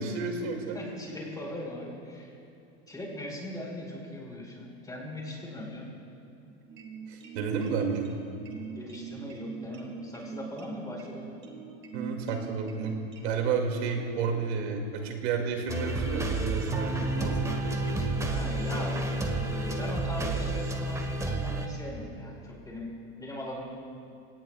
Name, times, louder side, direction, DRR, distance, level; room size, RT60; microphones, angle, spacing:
voice 1, 0.0-0.8 7.1-8.1 11.9-13.0 13.2-17.6, right 5 dB, 75° right, 2 dB, 2.5 m, -31 dB
voice 2, 0.7-2.3 2.9-6.0 8.7-11.3 18.2-19.0 19.3-22.9 23.2-23.6, left 1 dB, 10° left, -2 dB, 4.4 m, -40 dB
sound 1, 6.7-13.3, right 6 dB, 35° right, 2.3 m, -42 dB
sound 2, 15.7-21.7, right 2 dB, 10° right, 1.3 m, -30 dB
26.5 x 18.0 x 2.4 m, 2.9 s
supercardioid pair, 130°, 33 cm